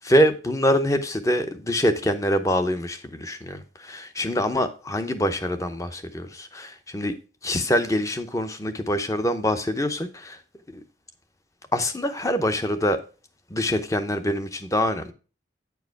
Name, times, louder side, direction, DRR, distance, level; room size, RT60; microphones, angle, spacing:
voice 1, 0.0-7.1 7.4-10.4 10.7-10.8 11.7-13.0 13.5-15.1, equal, 20° left, 0.7 m, -24 dB
8.9 x 4.7 x 4.7 m
head